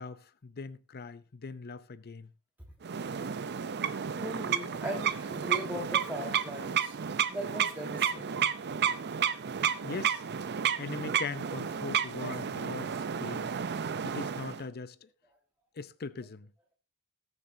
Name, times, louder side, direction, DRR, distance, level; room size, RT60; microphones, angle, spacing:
voice 1, 0.0-2.3 9.8-10.2 10.8-13.5 14.0-15.1 15.8-16.5, left 4 dB, 45° left, 0.6 m, -41 dB
sound 1, 2.8-14.6, right 8 dB, 50° right, 0.6 m, -32 dB
voice 2, 4.1-7.0 7.3-8.5, right 1 dB, 10° right, 1.5 m, -39 dB
19.5 x 6.8 x 2.7 m
head